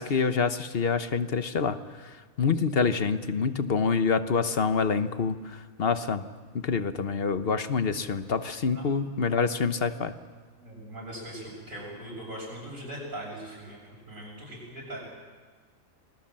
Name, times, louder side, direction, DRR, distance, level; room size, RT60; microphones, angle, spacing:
voice 1, 0.0-1.8 2.4-6.3 6.5-10.1, left 5 dB, 50° left, 10 dB, 1.2 m, -26 dB
voice 2, 10.6-13.8 14.1-15.0, right 1 dB, 80° right, -8 dB, 7.2 m, -40 dB
28.0 x 20.5 x 7.5 m, 1.4 s
omnidirectional pair, 1.4 m